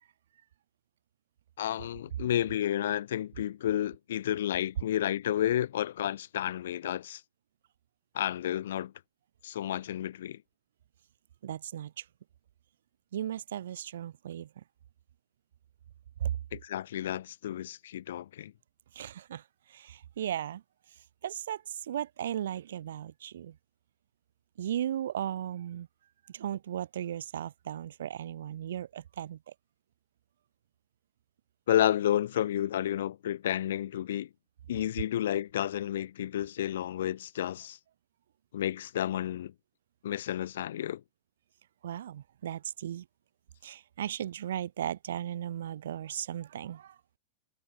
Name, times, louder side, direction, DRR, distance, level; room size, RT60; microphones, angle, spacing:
voice 1, 1.6-7.2 8.1-8.9 9.4-10.4 16.5-18.5 31.7-34.3 34.7-37.8 38.5-39.5 40.0-41.0, left 11 dB, 60° left, 1.9 m, -31 dB
voice 2, 11.4-12.0 13.1-14.5 16.2-16.3 18.9-19.4 19.7-20.6 21.2-23.6 24.6-25.9 26.3-29.4 41.8-43.1 43.6-47.0, right 10 dB, 60° right, 0.5 m, -36 dB
figure-of-eight pair, 90°, 0 cm